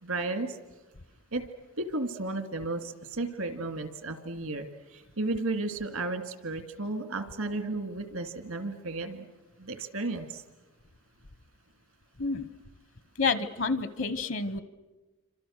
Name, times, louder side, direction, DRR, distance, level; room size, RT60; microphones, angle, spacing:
voice 1, 0.0-0.6 1.3-1.4 1.8-9.3 9.6-10.4, right 2 dB, 85° right, 8 dB, 2.3 m, -33 dB
voice 2, 13.2-14.6, left 4 dB, 65° left, 14 dB, 1.0 m, -29 dB
28.0 x 25.5 x 6.5 m, 1.2 s
head